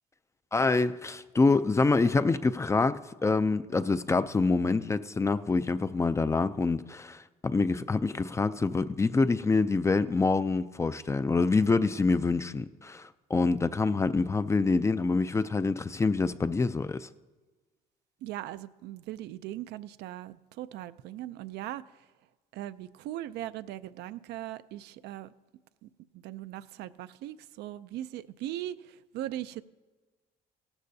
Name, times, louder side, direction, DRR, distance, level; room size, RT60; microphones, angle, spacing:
voice 1, 0.5-17.1, left 3 dB, 15° left, 0.4 m, -26 dB
voice 2, 18.2-22.1 22.5-25.3 25.8-29.6, right 13 dB, 80° right, 0.5 m, -39 dB
17.0 x 13.0 x 2.7 m
cardioid pair, 110°, 17 cm